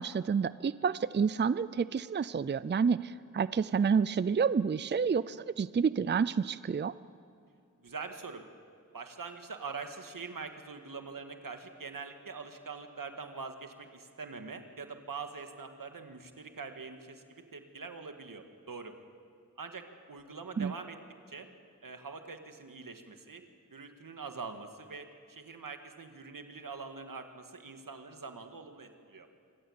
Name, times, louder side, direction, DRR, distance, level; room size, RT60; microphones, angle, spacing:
voice 1, 0.0-6.9 20.6-20.7, right 6 dB, 35° right, 17 dB, 0.4 m, -29 dB
voice 2, 7.8-8.5 8.9-19.0 19.6-21.0 21.3-21.5 21.8-23.4 23.7-29.3, right 4 dB, 85° right, 6 dB, 1.8 m, -44 dB
26.0 x 16.0 x 8.7 m, 2.4 s
wide cardioid pair, 70°, 32 cm